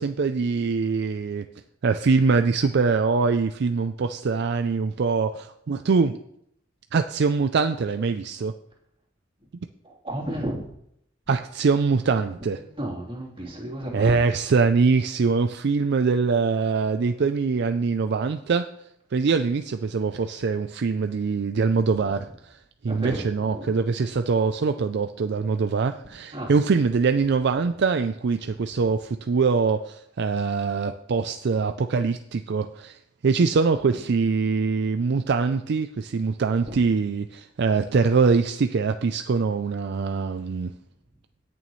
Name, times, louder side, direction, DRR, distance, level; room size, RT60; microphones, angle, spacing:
voice 1, 0.0-1.5 1.8-6.2 6.9-8.5 11.3-12.6 13.9-18.7 19.1-22.6 22.8-40.7, right 4 dB, 60° right, 8 dB, 0.4 m, -23 dB
voice 2, 9.8-10.7 12.6-14.1 22.9-23.7 26.3-26.5 33.9-34.0 36.6-36.8, right 1 dB, 30° right, -5 dB, 3.3 m, -33 dB
17.0 x 6.9 x 3.2 m, 0.74 s
head